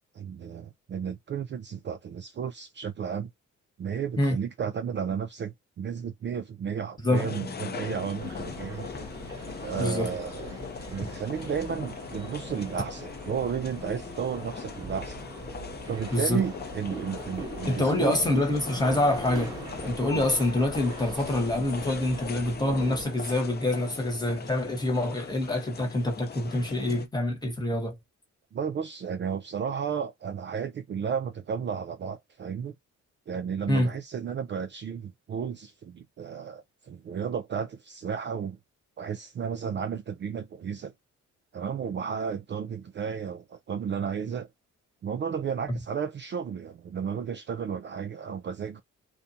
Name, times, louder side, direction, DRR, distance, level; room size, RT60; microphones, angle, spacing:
voice 1, 0.1-3.3 3.8-8.9 9.6-10.6 10.9-15.2 15.8-18.2 20.1-20.3 28.5-32.7 33.3-38.6 39.0-40.9 41.5-44.5 45.0-48.8, right 7 dB, 40° right, 0.4 m, -33 dB
voice 2, 7.0-7.3 9.8-10.1 16.1-16.4 17.7-19.6 19.8-28.0 33.7-33.9 45.7-45.8, left 1 dB, 15° left, 1.3 m, -26 dB
sound 1, 7.1-27.1, left 5 dB, 35° left, 0.6 m, -40 dB
sound 2, 8.2-23.1, right 3 dB, 15° right, 1.3 m, -42 dB
2.5 x 2.2 x 2.7 m
cardioid pair, 90°, 30 cm